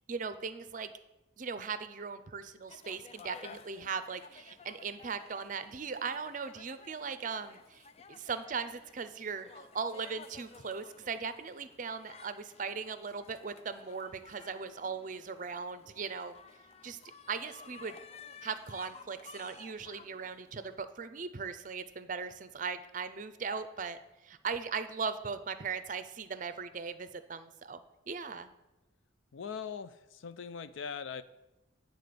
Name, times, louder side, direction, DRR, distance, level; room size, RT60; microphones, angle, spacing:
voice 1, 0.1-0.9 1.4-16.3 16.8-17.0 17.3-18.0 18.4-27.8 28.1-28.5, right 5 dB, 40° right, 12 dB, 0.5 m, -39 dB
sound 1, 2.7-20.8, left 5 dB, 30° left, 0.4 m, -54 dB
voice 2, 29.3-31.2, left 6 dB, 85° left, 13 dB, 0.5 m, -41 dB
9.6 x 4.1 x 6.7 m, 1.0 s
head